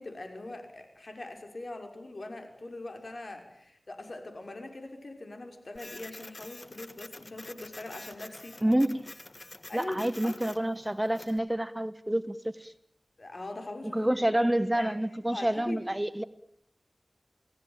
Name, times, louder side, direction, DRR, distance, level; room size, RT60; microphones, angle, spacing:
voice 1, 0.0-8.6 9.7-10.4 13.2-14.1 14.7-15.8, left 2 dB, 60° left, 5 dB, 5.8 m, -42 dB
Printer, 5.8-11.4, left 2 dB, 35° left, 1.5 m, -47 dB
voice 2, 8.6-9.1 9.7-12.7 13.9-16.2, right 1 dB, 15° right, 13 dB, 1.1 m, -28 dB
28.0 x 18.0 x 9.0 m, 0.74 s
wide cardioid pair, 60°, 0 cm